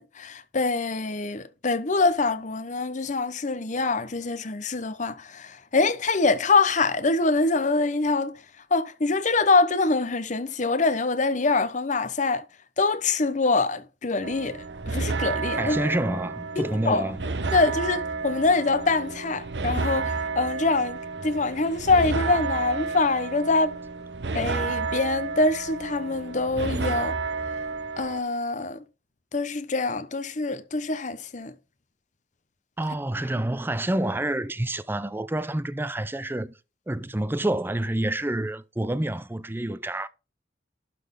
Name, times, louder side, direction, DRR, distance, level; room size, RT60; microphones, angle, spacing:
voice 1, 0.0-8.3 8.7-12.4 12.8-15.8 16.6-17.1 17.5-23.8 24.3-27.2 28.0-28.8 29.3-31.5, left 3 dB, 45° left, 0.8 m, -24 dB
sound 1, 14.2-28.2, right 4 dB, 70° right, 0.8 m, -31 dB
voice 2, 15.6-17.2 32.8-36.5 36.9-40.1, right 1 dB, 10° right, 0.5 m, -28 dB
11.5 x 4.2 x 5.4 m
head